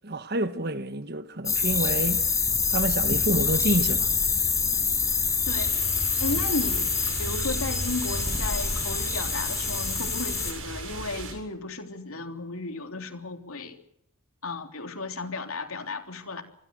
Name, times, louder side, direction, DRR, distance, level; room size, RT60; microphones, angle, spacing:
voice 1, 0.0-2.2 2.7-4.1, right 1 dB, 45° right, 1.4 m, -28 dB
sound 1, 1.5-10.5, left 5 dB, 15° left, 4.7 m, -26 dB
voice 2, 5.4-5.8 6.2-6.9 7.2-13.8 14.4-16.4, left 2 dB, 70° left, 3.3 m, -34 dB
sound 2, 5.5-11.3, right 2 dB, 65° right, 7.6 m, -38 dB
27.5 x 21.0 x 6.5 m
head